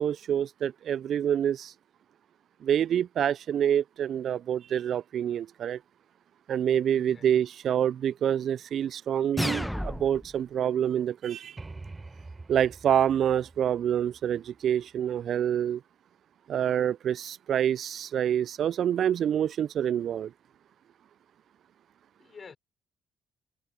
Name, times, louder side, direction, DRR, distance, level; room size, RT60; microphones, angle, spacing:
voice 1, 0.0-1.7 2.6-5.8 6.5-11.6 12.5-15.8 16.5-20.3, right 9 dB, 55° right, 0.6 m, -27 dB
voice 2, 6.9-7.4 22.2-22.6, left 5 dB, 40° left, 5.4 m, -49 dB
sound 1, 9.4-10.4, equal, 5° left, 1.4 m, -31 dB
sound 2, 11.6-15.2, right 3 dB, 25° right, 7.0 m, -46 dB
hypercardioid pair, 45°, 0 cm